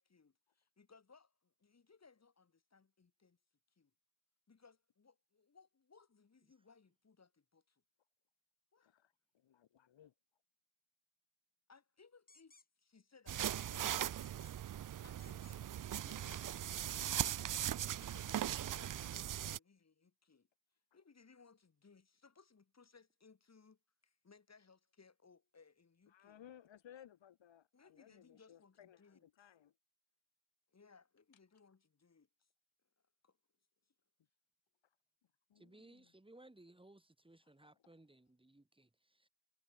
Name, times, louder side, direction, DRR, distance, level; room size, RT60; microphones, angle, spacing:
voice 1, 0.0-3.4 3.7-3.9 4.5-7.8 8.7-8.9 11.7-14.4 15.0-17.4 18.0-20.5 20.9-26.4 27.7-29.2 30.7-32.5 33.2-33.4 33.9-34.0, left 5 dB, 35° left, 7.0 m, -66 dB
voice 2, 8.8-10.1 20.9-21.0 26.1-29.7 35.5-36.1 37.4-37.9, left 10 dB, 80° left, 2.0 m, -61 dB
sound 1, 12.3-12.6 13.4-13.7 14.2-14.5 15.2-15.7 16.0-16.5 16.8-17.3 17.8-18.2, left 3 dB, 20° left, 2.3 m, -64 dB
sound 2, 13.3-19.6, right 11 dB, 45° right, 0.5 m, -39 dB
voice 3, 35.5-39.3, right 1 dB, 10° right, 4.8 m, -62 dB
wide cardioid pair, 165°, 45 cm